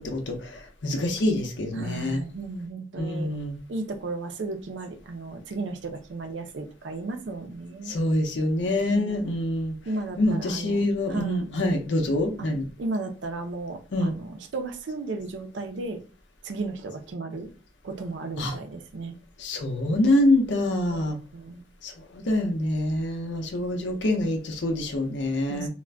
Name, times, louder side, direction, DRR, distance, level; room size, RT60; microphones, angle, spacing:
voice 1, 0.0-2.2 3.0-3.6 7.9-9.7 10.2-12.6 13.9-14.1 18.4-18.5 19.4-21.2 21.8-25.7, left 1 dB, 90° left, 4 dB, 0.6 m, -25 dB
voice 2, 1.7-3.3 3.7-8.0 8.9-9.4 9.9-11.5 12.4-12.5 12.8-16.0 16.4-17.5 17.8-19.2 20.9-21.6 25.5-25.7, right 3 dB, 90° right, 6 dB, 0.5 m, -34 dB
2.4 x 2.1 x 3.2 m, 0.37 s
head